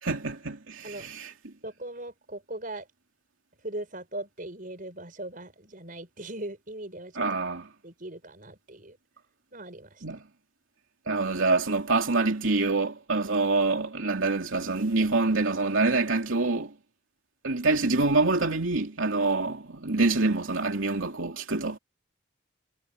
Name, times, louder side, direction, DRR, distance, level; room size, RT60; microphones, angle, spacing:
voice 1, 0.0-1.5 7.1-7.7 10.0-10.2 11.1-16.7 17.4-21.8, right 3 dB, 80° right, 2.8 m, -26 dB
voice 2, 1.6-2.9 3.6-7.3 7.8-9.0 9.5-10.2, right 1 dB, 40° right, 5.7 m, -39 dB
head